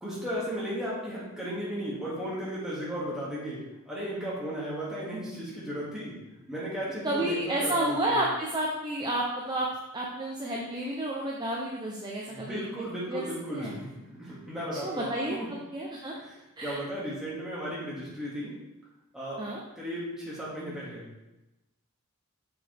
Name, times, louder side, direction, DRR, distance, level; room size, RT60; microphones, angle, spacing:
voice 1, 0.0-6.2 6.5-8.2 12.3-15.5 16.1-18.5 19.1-19.4 19.8-21.1, equal, ahead, -8 dB, 2.4 m, -35 dB
voice 2, 7.0-9.7 9.9-12.6 13.1-13.2 13.5-13.8 14.8-15.4 15.7-16.1 16.6-16.8 19.4-19.6, right 1 dB, 20° right, -3 dB, 0.8 m, -30 dB
6.8 x 6.5 x 3.6 m, 0.98 s
head